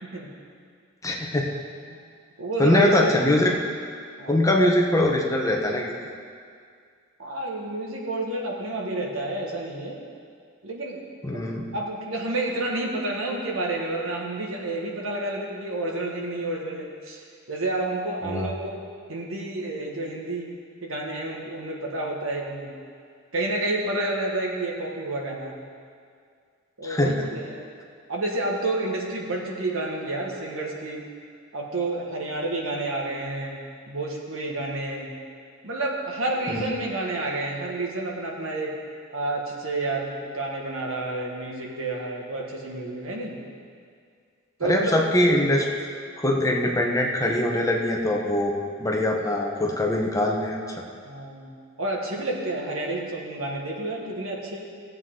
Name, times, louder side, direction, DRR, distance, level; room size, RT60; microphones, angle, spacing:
voice 1, 1.0-1.5 2.6-3.5 4.3-5.9 11.2-11.7 18.2-18.5 26.8-27.2 36.5-36.6 44.6-45.8 46.2-48.5 48.8-50.6, left 1 dB, 15° left, 0 dB, 1.0 m, -22 dB
voice 2, 2.4-3.1 4.2-4.5 7.2-10.0 10.6-11.0 11.3-18.8 19.1-20.5 20.8-22.7 23.3-25.5 26.8-27.6 28.1-31.1 31.5-33.6 33.9-35.1 35.6-38.7 39.1-43.4 44.6-44.9 51.0-51.5 51.8-54.7, right 2 dB, 80° right, -1 dB, 1.7 m, -30 dB
17.5 x 7.9 x 3.9 m, 2.2 s
head